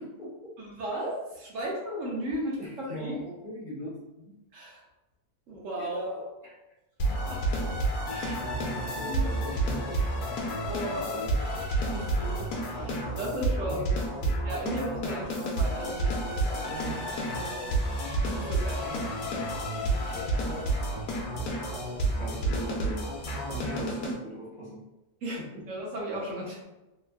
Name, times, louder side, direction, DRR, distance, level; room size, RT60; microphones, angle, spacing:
voice 1, 0.0-0.5 1.5-1.6 2.6-4.0 5.8-6.5 8.1-10.0 13.7-13.8 22.2-24.9 25.4-25.5, right 1 dB, 45° left, -7 dB, 0.7 m, -40 dB
voice 2, 0.6-3.1 4.5-4.9 5.5-6.0 7.1-7.5 8.1-8.4 9.0-9.3 10.7-13.9 14.4-17.7 18.3-19.1 19.7-20.7 25.2-26.6, right 1 dB, 60° right, -3 dB, 1.0 m, -36 dB
sound 1, 7.0-24.1, right 1 dB, 80° left, 1.2 m, -30 dB
3.6 x 2.4 x 2.2 m, 1.0 s
omnidirectional pair, 1.6 m